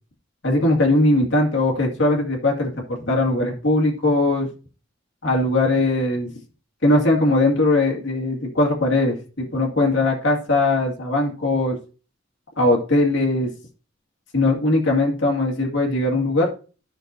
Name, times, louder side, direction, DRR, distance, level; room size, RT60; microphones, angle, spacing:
voice 1, 0.4-4.5 5.2-6.3 6.8-11.8 12.6-13.5 14.3-16.5, left 2 dB, 65° left, -1 dB, 2.3 m, -20 dB
12.5 x 6.1 x 2.7 m, 0.37 s
head